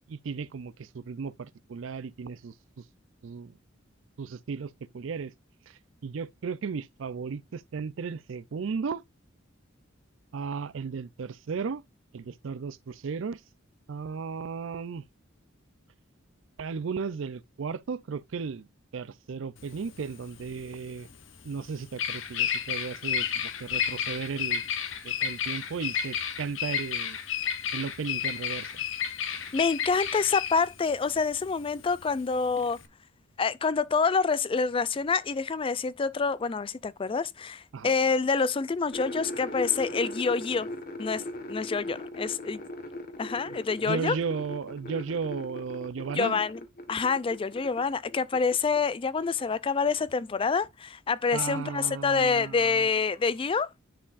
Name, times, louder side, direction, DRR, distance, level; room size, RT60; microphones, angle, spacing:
voice 1, 0.1-2.5 3.2-3.5 4.2-5.3 6.0-9.0 10.3-11.8 12.1-13.4 13.9-15.0 16.6-18.7 18.9-21.1 21.4-23.3 23.6-24.6 25.0-27.2 27.7-28.7 37.7-37.9 43.9-46.4 51.3-52.9, right 5 dB, 65° right, 0.4 m, -35 dB
Bird vocalization bird call bird song, 19.6-32.9, left 8 dB, 70° left, 0.9 m, -32 dB
voice 2, 29.5-32.8 33.4-40.7 41.0-41.2 41.5-42.6 43.2-44.2 46.1-46.6 46.9-53.7, left 5 dB, 25° left, 0.3 m, -27 dB
sound 1, 38.9-47.8 48.1-48.8, left 1 dB, 45° left, 1.3 m, -39 dB
10.5 x 4.4 x 2.5 m
head